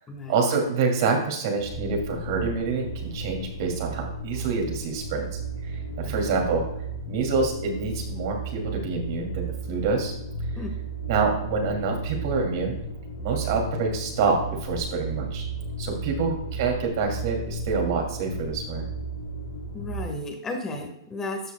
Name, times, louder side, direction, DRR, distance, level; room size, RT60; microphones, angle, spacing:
voice 1, 0.3-5.7 6.0-6.6 7.1-10.1 11.1-12.7 13.2-15.4 15.8-18.8, right 4 dB, 55° right, 2 dB, 2.6 m, -27 dB
sound 1, 1.6-20.1, right 3 dB, 70° left, 2.6 m, -34 dB
voice 2, 6.1-6.5 10.5-10.7 16.1-16.4 19.7-21.5, left 2 dB, 20° left, 3 dB, 1.6 m, -34 dB
12.5 x 7.0 x 2.3 m, 0.80 s
hypercardioid pair, 130°, 2 cm